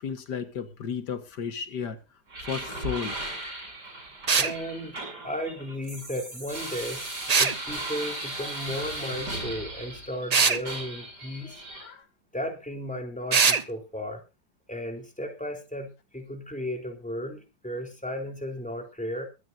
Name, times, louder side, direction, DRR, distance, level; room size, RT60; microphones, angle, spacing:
voice 1, 0.0-2.0 2.4-3.2 8.9-9.0 11.4-12.1, left 7 dB, 85° left, 9 dB, 2.1 m, -34 dB
sound 1, 2.3-10.3 10.6-11.9, right 1 dB, 85° right, 7.5 m, -37 dB
sound 2, 4.3-4.5 7.3-7.6 10.3-10.6 13.3-13.6, right 5 dB, 40° right, 0.5 m, -21 dB
voice 2, 4.4-5.0 5.2-7.0 7.4-11.6 12.3-14.2 14.7-19.2, equal, 5° left, 3 dB, 3.6 m, -35 dB
23.0 x 11.0 x 2.7 m, 0.29 s
omnidirectional pair, 1.8 m